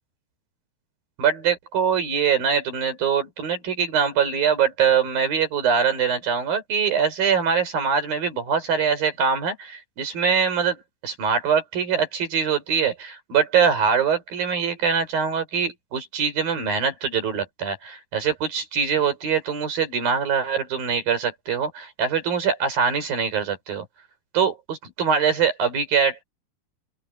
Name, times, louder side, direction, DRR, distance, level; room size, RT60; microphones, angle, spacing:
voice 1, 1.2-10.8 11.0-23.8 24.3-26.2, right 6 dB, 85° right, 6.8 m, -23 dB
open air
omnidirectional pair, 4.0 m